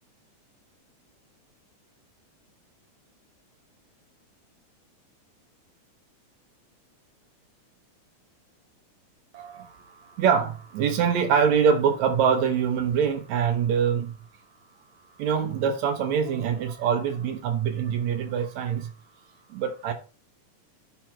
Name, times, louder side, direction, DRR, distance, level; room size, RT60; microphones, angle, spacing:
voice 1, 9.3-9.7 10.2-14.1 15.2-18.9 19.5-19.9, right 7 dB, 70° right, 2.0 m, -24 dB
10.5 x 4.4 x 3.2 m
omnidirectional pair, 3.6 m